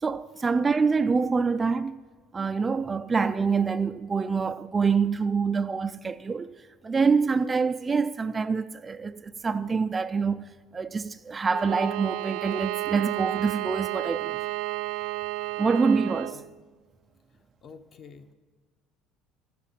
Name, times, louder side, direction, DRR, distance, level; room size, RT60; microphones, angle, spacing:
voice 1, 0.0-2.0 2.3-6.5 6.8-14.4 15.6-16.3, right 5 dB, 20° right, 0.4 m, -26 dB
Bowed string instrument, 11.5-16.4, right 18 dB, 80° right, 0.5 m, -32 dB
voice 2, 17.6-18.3, left 5 dB, 40° left, 1.0 m, -48 dB
13.5 x 8.3 x 9.8 m
cardioid pair, 135°, 0 cm